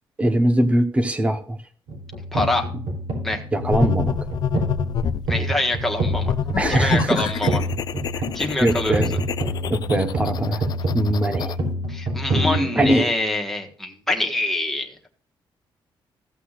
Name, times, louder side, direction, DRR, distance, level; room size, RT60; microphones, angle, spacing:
voice 1, 0.2-1.6 3.5-4.1 6.6-7.3 8.6-9.1 9.7-10.6 10.9-11.6 12.3-13.1, right 1 dB, 15° right, 7 dB, 1.0 m, -21 dB
sound 1, 1.9-12.9, right 1 dB, 70° right, 3.3 m, -27 dB
voice 2, 2.3-2.7 3.2-3.4 5.3-6.3 6.7-7.6 8.3-9.1 11.9-15.1, left 2 dB, 5° left, 1 dB, 1.4 m, -25 dB
sound 2, 3.7-5.3 6.0-11.6, left 9 dB, 50° left, 0.4 m, -28 dB
15.0 x 8.2 x 2.5 m, 0.44 s
wide cardioid pair, 170°, 9 cm